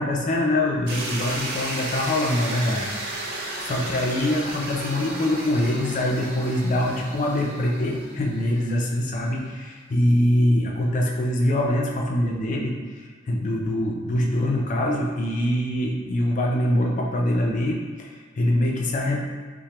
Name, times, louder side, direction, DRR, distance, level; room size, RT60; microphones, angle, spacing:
voice 1, 0.0-19.3, left 1 dB, 40° left, 0 dB, 0.4 m, -24 dB
sound 1, 0.9-8.9, right 2 dB, 50° right, 0.5 m, -34 dB
3.1 x 2.1 x 2.8 m, 1.5 s
head